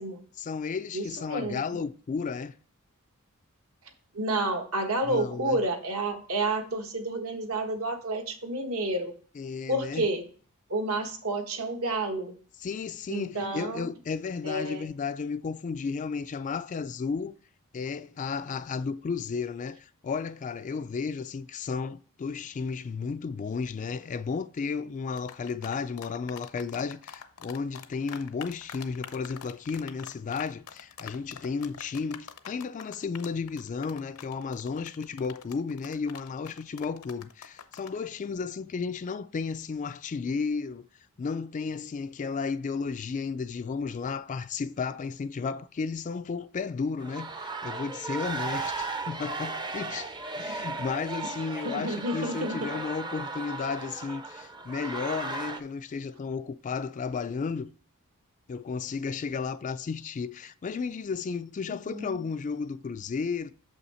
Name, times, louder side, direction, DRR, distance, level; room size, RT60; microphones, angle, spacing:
voice 1, 0.4-2.5 5.1-5.6 9.4-10.1 12.6-17.4 17.7-40.9 41.2-57.7 58.5-63.5, left 5 dB, 35° left, 0.3 m, -33 dB
voice 2, 0.9-1.6 4.1-9.1 9.7-10.2 10.7-12.3 13.1-13.9 14.4-14.9 50.5-50.6 51.2-51.3 51.6-52.7 61.9-62.2, right 2 dB, 70° right, 1.4 m, -30 dB
sound 1, 25.2-38.0, left 7 dB, 70° left, 0.7 m, -44 dB
sound 2, 47.0-55.6, right 3 dB, 20° right, 0.5 m, -36 dB
6.9 x 5.7 x 4.2 m
head